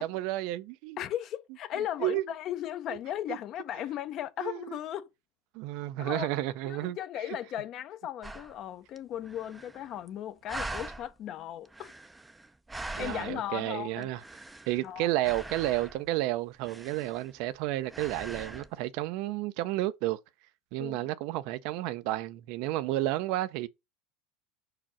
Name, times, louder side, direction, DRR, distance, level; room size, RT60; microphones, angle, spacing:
voice 1, 0.0-1.0 2.0-2.2 4.4-4.8 5.5-7.0 13.0-14.2 14.7-20.2 20.7-23.7, right 16 dB, 60° right, 0.6 m, -31 dB
voice 2, 1.0-5.1 6.0-6.3 6.6-11.9 13.0-14.1 14.8-15.1 20.8-21.0, left 11 dB, 40° left, 0.7 m, -36 dB
sound 1, 8.2-8.6 9.0-9.1 9.2-10.1 10.5-11.1 11.6-13.5 14.0-14.9 15.2-16.1 16.6-17.6 17.9-18.7, right 2 dB, 10° right, 0.5 m, -42 dB
5.8 x 4.9 x 4.3 m
supercardioid pair, 145°, 0 cm